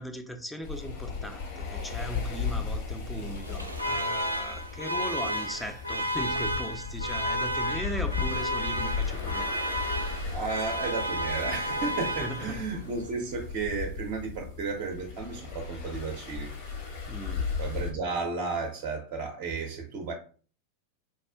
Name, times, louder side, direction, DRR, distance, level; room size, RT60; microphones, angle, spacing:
voice 1, 0.0-9.5 12.0-12.8 17.1-17.5, equal, ahead, 0.4 m, -38 dB
sound 1, 0.6-17.9, left 5 dB, 55° left, 1.0 m, -36 dB
Alarm, 3.4-12.8, equal, 85° right, 0.4 m, -32 dB
voice 2, 10.3-16.5 17.6-20.1, right 4 dB, 45° right, 0.6 m, -33 dB
4.3 x 2.4 x 2.2 m
figure-of-eight pair, 90°, 0 cm